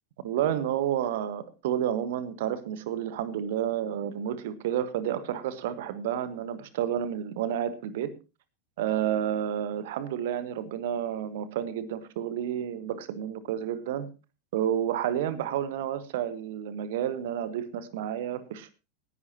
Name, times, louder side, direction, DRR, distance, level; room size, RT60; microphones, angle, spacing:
voice 1, 0.2-8.1 8.8-14.1 14.5-18.7, right 10 dB, 55° right, 14 dB, 1.5 m, -30 dB
18.5 x 11.0 x 3.0 m, 0.29 s
figure-of-eight pair, 90°, 0 cm